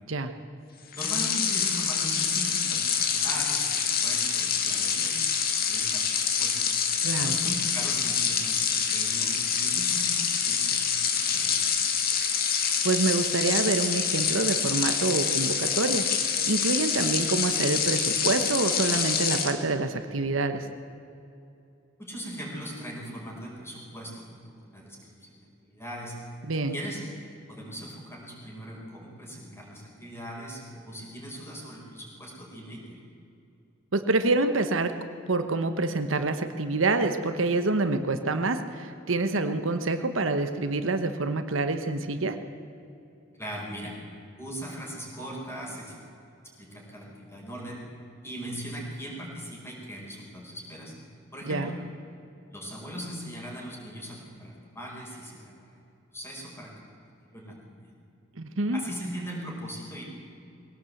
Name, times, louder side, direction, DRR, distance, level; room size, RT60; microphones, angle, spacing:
sound 1, 0.9-19.6, left 7 dB, 50° left, 1.9 m, -26 dB
voice 1, 0.9-5.2 5.6-6.6 7.2-11.8 22.0-25.1 25.6-26.2 26.7-27.0 27.5-33.1 43.3-44.0 44.4-46.0 46.6-47.8 48.2-50.9 51.3-51.7 52.5-55.8 56.1-56.7 57.0-57.9 58.7-60.0, equal, 15° left, -2 dB, 5.1 m, -39 dB
voice 2, 7.0-7.3 12.8-20.7 26.4-26.8 33.9-34.9 35.3-42.4 51.5-51.7 58.4-58.8, right 3 dB, 75° right, 8 dB, 1.1 m, -27 dB
21.5 x 17.0 x 7.9 m, 2.7 s
head